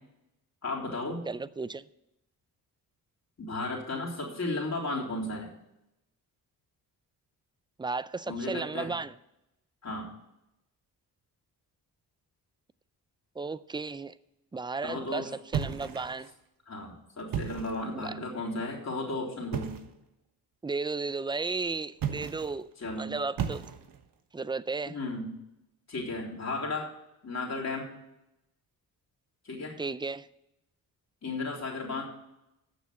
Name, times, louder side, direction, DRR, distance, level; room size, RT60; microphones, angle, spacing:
voice 1, 0.6-1.3 3.4-5.5 8.3-8.9 9.8-10.1 14.8-15.3 15.7-15.8 16.7-19.7 22.8-23.1 24.9-25.3 25.9-26.9 27.2-27.9 29.5-29.8 31.2-32.0, left 2 dB, 45° left, 3.5 m, -34 dB
voice 2, 1.3-1.8 7.8-9.1 13.4-14.1 14.5-16.3 17.9-18.2 20.6-22.7 23.0-23.6 24.3-25.0 29.8-30.3, right 4 dB, 10° right, 0.4 m, -34 dB
sound 1, 15.5-16.3 17.2-17.9 19.5-20.0 21.9-22.6 23.4-24.1, right 7 dB, 60° right, 1.2 m, -34 dB
8.9 x 6.9 x 7.7 m
cardioid pair, 70°, 38 cm